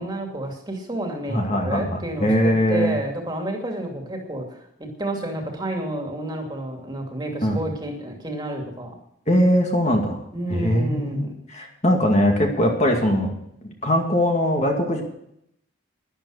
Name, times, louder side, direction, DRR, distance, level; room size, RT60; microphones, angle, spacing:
voice 1, 0.0-8.9 10.3-11.3, right 1 dB, 20° right, 2 dB, 2.6 m, -30 dB
voice 2, 1.3-2.9 7.4-7.6 9.3-10.2 10.5-13.3 13.8-15.0, equal, 35° left, 2 dB, 2.3 m, -21 dB
12.5 x 11.5 x 6.5 m, 0.75 s
head